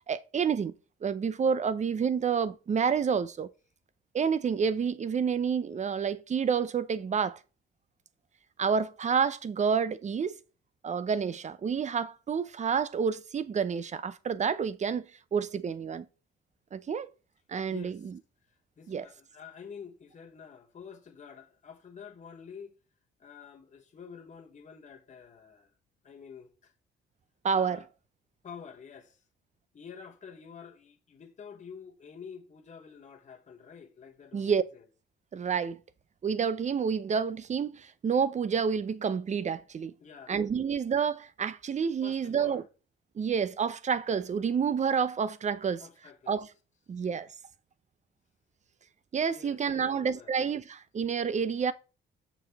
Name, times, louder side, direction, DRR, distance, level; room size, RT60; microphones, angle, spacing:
voice 1, 0.1-0.7 1.0-3.5 4.1-7.4 8.6-10.4 10.8-15.1 15.3-16.1 16.7-17.1 17.5-18.0 18.9-19.1 27.4-27.8 34.3-34.6 35.3-35.8 36.2-39.9 40.3-42.6 43.2-45.8 46.3-46.5 46.9-47.3 49.1-51.7, right 6 dB, 35° right, 0.6 m, -29 dB
voice 2, 17.7-18.1 18.8-22.8 23.2-25.7 26.0-26.7 27.5-27.9 28.4-29.2 29.7-34.8 40.0-40.4 42.0-42.7 45.8-46.5 49.3-50.3, left 6 dB, 40° left, 1.2 m, -48 dB
6.6 x 6.1 x 3.5 m
cardioid pair, 90°, 20 cm